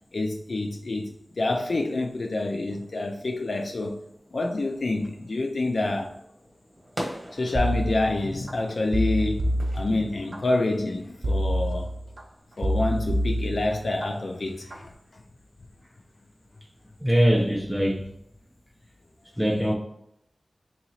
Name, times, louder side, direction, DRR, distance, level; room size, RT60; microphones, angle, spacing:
voice 1, 0.1-4.0 4.3-6.1 7.0-11.9 12.6-15.2, left 2 dB, 65° left, 0.3 m, -28 dB
sound 1, 2.7-9.8, equal, 15° right, 1.1 m, -43 dB
sound 2, 7.5-8.5 8.9-10.4 11.2-12.2 12.6-14.1 14.5-14.9, equal, 60° right, 0.5 m, -27 dB
voice 2, 17.0-18.0 19.4-19.7, equal, ahead, 0.5 m, -22 dB
3.8 x 2.9 x 2.8 m
wide cardioid pair, 65°, 0 cm